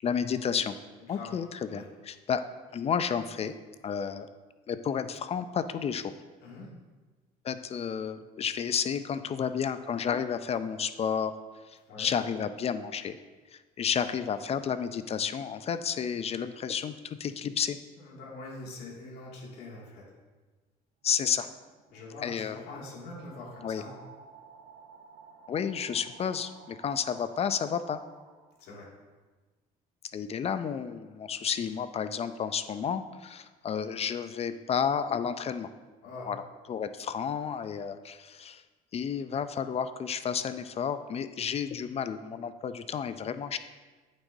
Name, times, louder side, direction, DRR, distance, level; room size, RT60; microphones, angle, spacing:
voice 1, 0.0-0.7 1.1-2.4 2.7-3.5 3.8-4.3 4.7-6.1 7.4-11.3 11.7-13.2 13.5-17.8 21.0-21.5 22.2-22.6 23.6-23.8 25.5-28.0 30.1-35.7 36.3-36.4 36.7-38.6 38.9-43.6, left 7 dB, 40° left, 11 dB, 0.4 m, -31 dB
voice 2, 1.0-1.3 1.7-1.9 6.4-6.7 11.8-12.1 18.0-20.1 21.9-24.0 28.6-28.9 36.0-36.3, left 2 dB, 75° left, -4 dB, 2.4 m, -44 dB
sound 1, 21.0-28.8, right 5 dB, 85° right, 0.9 m, -54 dB
8.9 x 7.1 x 2.7 m, 1.3 s
cardioid pair, 100°, 17 cm